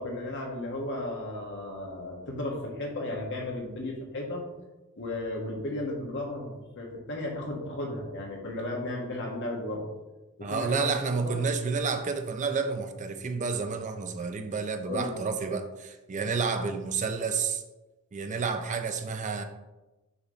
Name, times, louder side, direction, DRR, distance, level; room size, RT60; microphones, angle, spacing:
voice 1, 0.0-4.5 4.9-9.9 10.4-10.9 11.2-11.4 14.9-15.2, left 1 dB, 55° left, 0 dB, 1.4 m, -34 dB
voice 2, 10.4-17.6 18.1-19.4, right 5 dB, 35° right, 7 dB, 0.5 m, -30 dB
6.9 x 3.0 x 5.4 m, 1.1 s
head